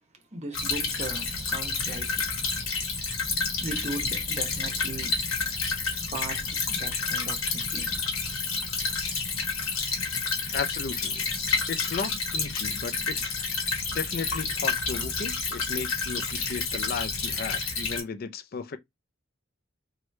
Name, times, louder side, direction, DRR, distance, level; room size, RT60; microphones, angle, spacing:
voice 1, 0.3-2.2 3.6-5.2 5.9-8.1, right 2 dB, 35° right, 0.8 m, -38 dB
Stream / Trickle dribble, 0.5-18.0, left 4 dB, 90° left, 1.0 m, -29 dB
voice 2, 10.5-11.3 11.7-13.3 13.9-18.8, left 5 dB, 45° left, 0.4 m, -35 dB
3.0 x 2.3 x 3.1 m
head